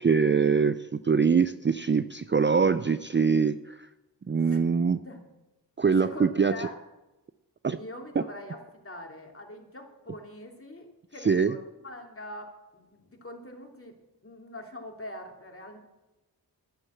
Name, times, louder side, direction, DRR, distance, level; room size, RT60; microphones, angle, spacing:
voice 1, 0.0-3.9 4.3-5.0 5.8-6.7 7.6-7.8 11.2-11.6, right 5 dB, 25° right, 12 dB, 0.5 m, -23 dB
voice 2, 6.0-6.8 7.8-13.9 14.2-15.8, left 1 dB, 30° left, 2 dB, 3.0 m, -43 dB
11.0 x 10.0 x 7.2 m, 1.0 s
cardioid pair, 40°, 43 cm